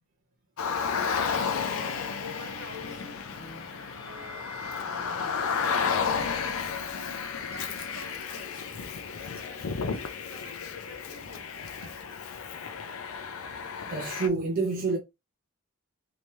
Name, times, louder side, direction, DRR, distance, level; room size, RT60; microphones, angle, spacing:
Car, 0.6-14.3, left 6 dB, 75° left, 0.5 m, -32 dB
sound 1, 1.0-6.3, left 2 dB, 20° left, 1.1 m, -48 dB
voice 1, 1.4-3.3 3.7-4.5 7.2-12.0, left 1 dB, 65° right, 1.0 m, -49 dB
voice 2, 4.8-5.4 13.9-15.0, right 4 dB, 40° right, 0.7 m, -30 dB
3.0 x 2.8 x 3.3 m
head